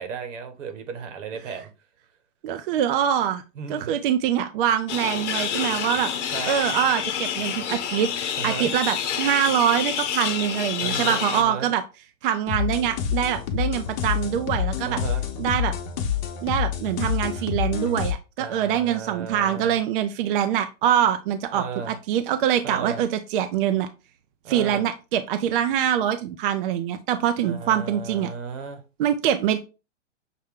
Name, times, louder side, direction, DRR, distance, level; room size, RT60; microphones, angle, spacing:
voice 1, 0.0-1.7 3.5-4.0 6.3-6.5 8.4-8.7 10.8-11.7 14.8-15.2 18.4-19.8 21.5-22.0 22.6-23.0 24.4-24.9 27.4-28.8, right 6 dB, 75° right, 1.3 m, -35 dB
voice 2, 2.4-3.4 3.7-6.1 6.5-8.1 8.4-11.8 12.2-15.0 15.4-15.7 16.4-23.9 24.5-28.3 29.0-29.6, right 10 dB, 45° right, 0.4 m, -24 dB
sound 1, 4.9-11.4, left 8 dB, 65° left, 0.9 m, -28 dB
sound 2, 12.5-18.1, left 8 dB, 40° left, 0.8 m, -27 dB
6.5 x 2.2 x 3.6 m
hypercardioid pair, 145°, 37 cm